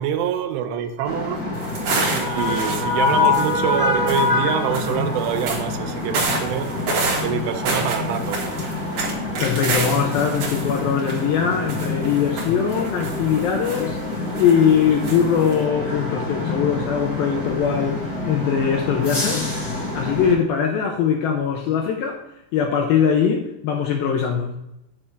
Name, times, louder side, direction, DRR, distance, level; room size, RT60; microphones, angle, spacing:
voice 1, 0.0-1.4 2.1-6.9 7.2-8.4, right 9 dB, 80° right, 8 dB, 2.7 m, -25 dB
sound 1, 1.0-20.3, left 3 dB, 35° left, 1.8 m, -26 dB
sound 2, 1.5-3.8 4.1-4.3 4.7-5.6 6.1-11.4 11.7-14.0 14.4-14.7 15.0-15.5, right 3 dB, 55° right, 2.8 m, -28 dB
voice 2, 9.4-14.0 14.3-18.0 18.3-19.5 19.9-22.2 22.5-24.6, left 7 dB, 80° left, 2 dB, 2.2 m, -21 dB
8.8 x 3.4 x 6.4 m, 0.85 s
omnidirectional pair, 4.9 m